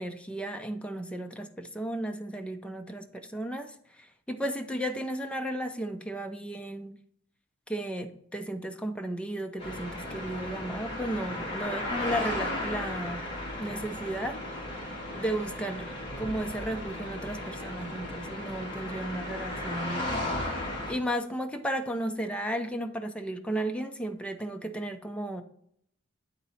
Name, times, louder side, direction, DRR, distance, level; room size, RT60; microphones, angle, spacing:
voice 1, 0.0-7.0 7.7-13.2 13.6-14.4 15.1-20.3 20.9-25.4, right 1 dB, 5° left, 0.5 m, -34 dB
sound 1, 9.6-20.9, left 1 dB, 25° left, 1.8 m, -35 dB
8.7 x 4.0 x 4.1 m
head